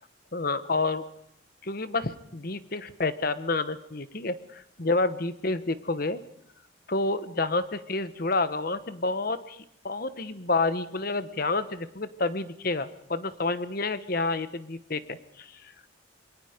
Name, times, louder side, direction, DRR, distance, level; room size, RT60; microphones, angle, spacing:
voice 1, 0.3-1.0 1.6-6.2 6.9-15.5, left 3 dB, 50° left, 13 dB, 1.1 m, -29 dB
27.0 x 22.5 x 5.1 m, 0.73 s
head